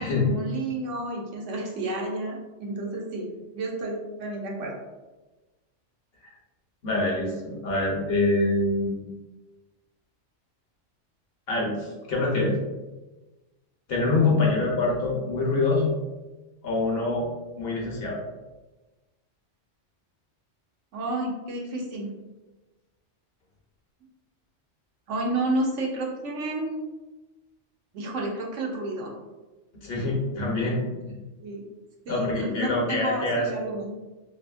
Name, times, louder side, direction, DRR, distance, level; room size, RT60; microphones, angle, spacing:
voice 1, 0.0-3.3 3.5-4.8 20.9-22.1 25.1-26.8 27.9-29.1 31.4-31.6 32.1-33.9, right 2 dB, 80° right, -1 dB, 1.0 m, -31 dB
voice 2, 6.8-9.0 11.5-12.6 13.9-15.9 16.6-17.3 17.6-18.2 29.8-30.8 31.1-31.2 32.1-33.7, left 2 dB, 60° left, -2 dB, 0.8 m, -25 dB
2.7 x 2.5 x 2.3 m, 1.1 s
omnidirectional pair, 1.2 m